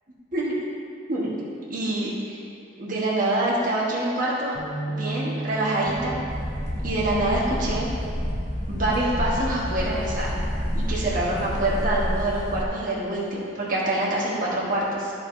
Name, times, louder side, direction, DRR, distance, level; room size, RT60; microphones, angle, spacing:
voice 1, 1.7-2.4 2.8-4.5 4.9-6.2 6.8-7.9 8.7-10.4 10.7-15.1, right 1 dB, 45° right, -6 dB, 1.3 m, -26 dB
sound 1, 4.5-8.8 9.3-9.5 10.4-10.8, right 2 dB, 75° right, 1.9 m, -36 dB
sound 2, 5.9-11.6, right 1 dB, 25° right, 0.4 m, -37 dB
sound 3, 6.3-12.6, equal, 40° left, 0.7 m, -29 dB
13.0 x 4.9 x 2.7 m, 2.4 s
head